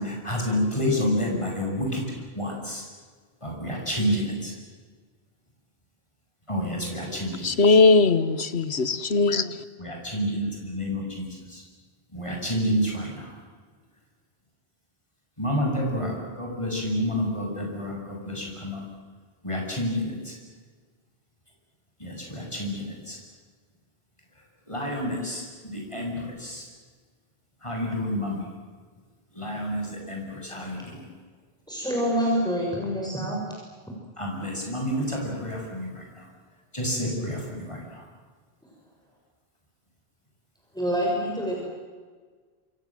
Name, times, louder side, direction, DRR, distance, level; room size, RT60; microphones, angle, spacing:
voice 1, 0.0-2.0 2.3-2.8 3.4-4.5 6.5-7.5 9.8-11.6 12.1-13.3 15.4-18.8 19.4-20.4 22.0-23.2 24.7-26.6 27.6-28.4 29.3-31.0 34.2-36.2 36.7-38.0, equal, 30° left, -1 dB, 8.0 m, -29 dB
voice 2, 7.4-9.5, left 3 dB, 85° left, 13 dB, 1.6 m, -19 dB
voice 3, 31.7-33.4 40.7-41.6, equal, 5° left, -2 dB, 6.4 m, -26 dB
28.0 x 27.0 x 7.8 m, 1.5 s
omnidirectional pair, 1.1 m